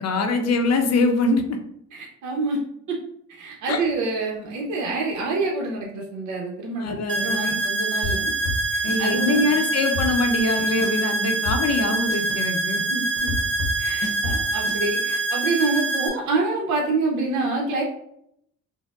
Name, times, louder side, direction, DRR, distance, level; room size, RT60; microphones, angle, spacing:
voice 1, 0.0-1.6 3.7-3.8 6.8-7.6 8.8-12.8, left 3 dB, 60° left, 5 dB, 0.6 m, -23 dB
voice 2, 1.9-2.6 2.9-3.0 3.3-8.3 8.7-9.5 12.9-13.3 13.8-17.8, right 3 dB, 75° right, -2 dB, 0.7 m, -27 dB
sound 1, 7.1-16.1, right 3 dB, 40° right, 0.6 m, -25 dB
sound 2, 8.0-9.0 9.3-9.4 9.8-11.1 11.4-14.8, left 2 dB, 90° left, 0.9 m, -29 dB
4.4 x 2.0 x 2.3 m, 0.73 s
cardioid pair, 90°, 30 cm